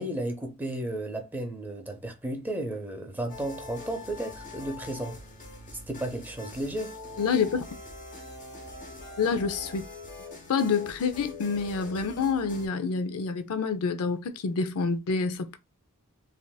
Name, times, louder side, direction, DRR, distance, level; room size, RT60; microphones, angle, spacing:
voice 1, 0.0-5.2 5.9-7.0, right 1 dB, 10° right, 0.7 m, -33 dB
sound 1, 3.3-12.7, left 2 dB, 35° left, 1.2 m, -43 dB
voice 2, 7.2-7.6 9.2-9.8 10.5-15.6, left 5 dB, 70° left, 0.5 m, -27 dB
3.3 x 2.7 x 2.3 m
head